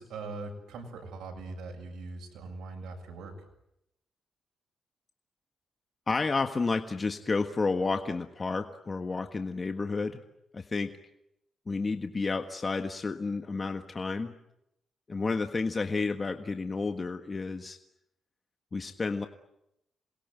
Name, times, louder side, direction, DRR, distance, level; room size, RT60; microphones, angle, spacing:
voice 1, 0.0-3.3, right 3 dB, 85° right, 2 dB, 7.2 m, -41 dB
voice 2, 6.1-10.2 10.5-10.9 11.7-14.3 15.1-17.8 18.7-19.3, left 4 dB, 30° left, 6 dB, 1.5 m, -31 dB
28.0 x 21.5 x 9.3 m, 0.82 s
cardioid pair, 105°, 0 cm